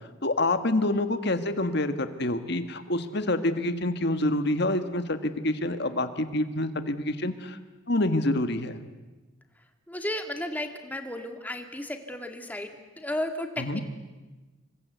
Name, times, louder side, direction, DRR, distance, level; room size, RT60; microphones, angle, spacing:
voice 1, 0.2-7.6 7.9-8.8 13.6-13.8, left 1 dB, 55° left, 9 dB, 1.8 m, -27 dB
voice 2, 9.9-13.8, left 1 dB, 10° left, 5 dB, 2.2 m, -34 dB
27.5 x 24.0 x 8.2 m, 1.2 s
head